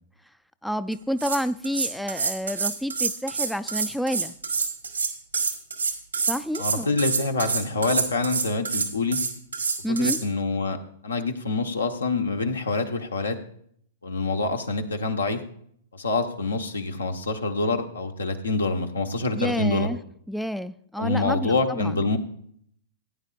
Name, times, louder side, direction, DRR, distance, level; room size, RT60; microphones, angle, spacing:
voice 1, 0.6-4.3 6.3-6.9 9.8-10.2 19.3-20.0 20.3-22.1, equal, ahead, 13 dB, 0.4 m, -29 dB
sound 1, 0.9-1.0 1.2-10.2, right 5 dB, 90° right, 1.7 m, -27 dB
voice 2, 6.6-9.2 9.9-10.8 11.0-13.4 14.0-15.4 15.9-19.9 21.0-22.2, left 3 dB, 85° left, 5 dB, 1.2 m, -26 dB
16.5 x 9.6 x 2.5 m, 0.65 s
figure-of-eight pair, 105°, 0 cm